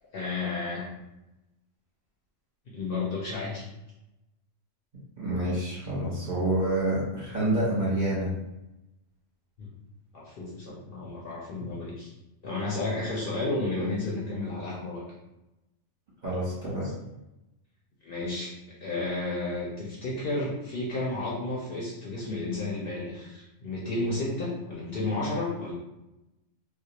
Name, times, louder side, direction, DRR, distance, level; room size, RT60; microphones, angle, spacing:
voice 1, 0.1-0.9 2.7-3.7 9.6-9.7 10.1-12.1 12.4-15.0 18.0-25.7, left 2 dB, 60° left, -5 dB, 0.6 m, -32 dB
voice 2, 5.2-8.3 16.2-16.9, right 1 dB, 45° right, -7 dB, 0.8 m, -28 dB
2.4 x 2.1 x 2.8 m, 0.95 s
omnidirectional pair, 1.3 m